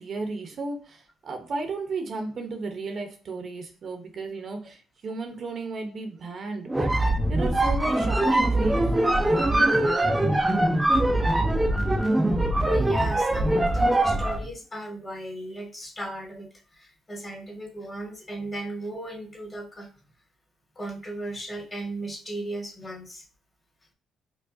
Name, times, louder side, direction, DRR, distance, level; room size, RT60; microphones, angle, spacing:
voice 1, 0.0-10.2, right 3 dB, 50° right, 5 dB, 0.8 m, -34 dB
sound 1, 6.7-14.5, right 1 dB, 15° right, 0.4 m, -22 dB
voice 2, 12.6-19.9 20.7-23.2, right 1 dB, 25° left, 0 dB, 1.4 m, -36 dB
4.6 x 2.3 x 2.6 m, 0.38 s
cardioid pair, 90°, 0 cm